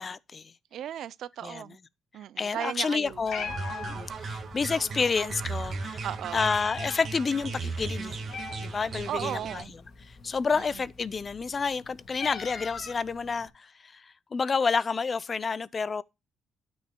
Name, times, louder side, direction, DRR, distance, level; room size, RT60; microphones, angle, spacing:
voice 1, 0.0-0.5 1.4-1.6 2.4-3.5 3.8-6.0 6.3-8.2 8.6-9.6 10.0-16.0, left 5 dB, 35° left, 0.5 m, -29 dB
voice 2, 0.7-1.8 2.1-3.7 6.0-6.5 9.1-9.7 10.5-10.8, right 11 dB, 75° right, 0.4 m, -36 dB
Meow, 3.1-13.5, left 5 dB, 60° left, 2.0 m, -43 dB
sound 1, 3.5-9.6, right 4 dB, 50° right, 1.7 m, -36 dB
12.5 x 6.2 x 2.2 m
cardioid pair, 90°, 0 cm